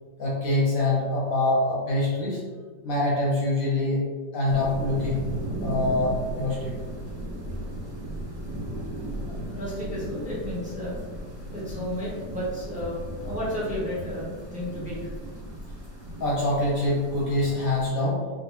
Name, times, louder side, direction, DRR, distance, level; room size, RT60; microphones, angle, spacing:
voice 1, 0.2-2.4 2.8-4.0 4.3-5.2 5.6-6.7 16.2-18.2, left 2 dB, 60° left, -5 dB, 1.0 m, -25 dB
sound 1, 4.5-17.9, right 1 dB, 70° right, 1.6 m, -36 dB
voice 2, 9.0-11.0 11.5-15.1, equal, 10° right, -8 dB, 0.4 m, -33 dB
3.5 x 2.5 x 2.9 m, 1.5 s
omnidirectional pair, 1.9 m